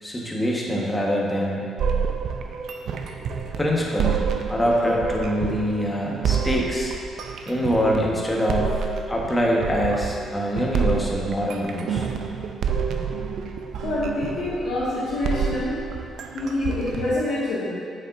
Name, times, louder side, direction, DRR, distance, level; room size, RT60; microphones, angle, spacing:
voice 1, 0.0-1.6 3.6-6.9 7.5-12.1, equal, 15° left, -3 dB, 1.3 m, -24 dB
sound 1, 1.8-17.2, right 6 dB, 70° right, 0.5 m, -28 dB
voice 2, 13.8-15.8 16.3-17.7, left 2 dB, 75° left, -11 dB, 1.7 m, -26 dB
8.3 x 6.5 x 2.6 m, 2.3 s
cardioid pair, 90°, 0 cm